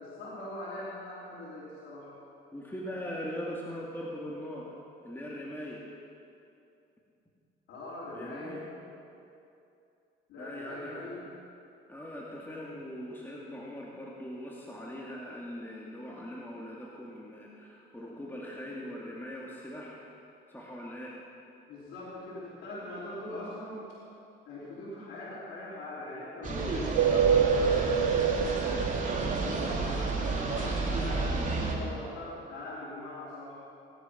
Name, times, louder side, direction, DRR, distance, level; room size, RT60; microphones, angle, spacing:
voice 1, 0.0-2.1 7.7-8.5 10.3-11.3 21.7-23.8 24.5-28.8 29.4-33.6, left 1 dB, 90° left, -10 dB, 3.9 m, -41 dB
voice 2, 2.5-4.7 5.0-5.8 8.1-8.6 10.4-11.1 11.9-20.0 20.5-21.1, equal, 10° left, -4 dB, 2.3 m, -41 dB
sound 1, 26.4-31.8, right 3 dB, 40° right, 2.9 m, -31 dB
sound 2, 26.9-30.5, right 7 dB, 85° right, 0.6 m, -27 dB
18.5 x 11.5 x 5.8 m, 2.7 s
cardioid pair, 90°, 20 cm